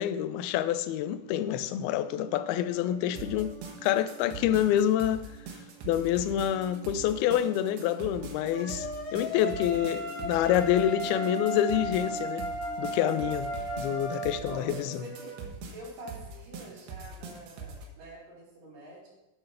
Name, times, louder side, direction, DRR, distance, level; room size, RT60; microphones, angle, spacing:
voice 1, 0.0-3.5 3.8-5.2 5.9-8.9 9.1-12.5 12.8-13.5 13.8-15.0, left 11 dB, 80° left, 2.4 m, -27 dB
sound 1, 2.0-15.5, right 4 dB, 5° right, 1.7 m, -47 dB
sound 2, 3.2-17.9, right 4 dB, 90° right, 3.4 m, -43 dB
sound 3, 8.5-14.3, left 1 dB, 40° left, 2.3 m, -35 dB
voice 2, 9.6-10.0 14.4-15.3 15.7-19.1, right 1 dB, 70° right, 5.7 m, -46 dB
8.8 x 7.7 x 5.7 m
omnidirectional pair, 4.6 m